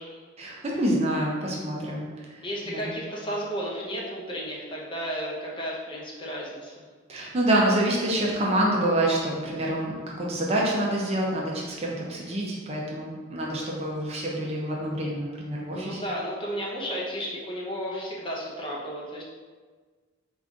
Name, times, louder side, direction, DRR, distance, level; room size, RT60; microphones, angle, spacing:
voice 1, 0.4-2.9 7.1-16.0, right 1 dB, 30° right, -3 dB, 0.7 m, -27 dB
voice 2, 2.4-6.8 15.7-19.2, equal, 25° left, -4 dB, 0.8 m, -33 dB
4.9 x 2.5 x 3.7 m, 1.4 s
head